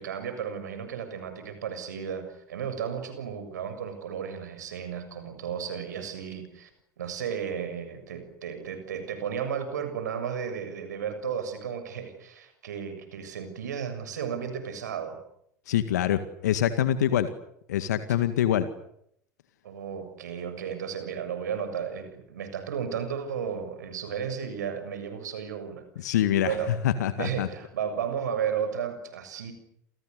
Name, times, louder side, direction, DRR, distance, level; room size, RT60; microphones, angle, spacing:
voice 1, 0.0-6.7 7.0-15.2 19.6-25.8 26.4-26.7 27.2-29.5, right 7 dB, 70° right, 9 dB, 7.1 m, -34 dB
voice 2, 15.7-17.3 17.7-18.7 26.0-26.6 26.8-27.5, left 11 dB, 70° left, 11 dB, 1.9 m, -25 dB
29.0 x 28.5 x 6.8 m, 0.74 s
figure-of-eight pair, 75°, 10 cm